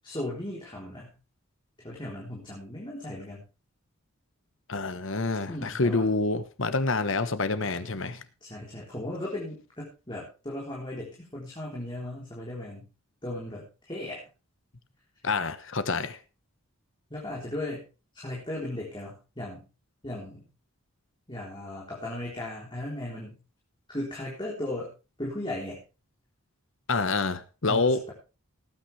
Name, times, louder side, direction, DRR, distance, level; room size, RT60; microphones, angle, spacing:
voice 1, 0.0-1.1 1.8-3.4 5.5-6.1 8.4-12.9 13.2-14.2 17.1-17.8 18.1-19.6 20.0-20.5 21.3-23.4 23.9-24.9 25.2-25.8 27.7-28.1, left 1 dB, 20° left, -4 dB, 3.8 m, -36 dB
voice 2, 4.7-8.2 15.2-16.2 26.9-28.0, left 3 dB, 60° left, 12 dB, 1.2 m, -27 dB
19.0 x 9.3 x 3.3 m, 0.31 s
head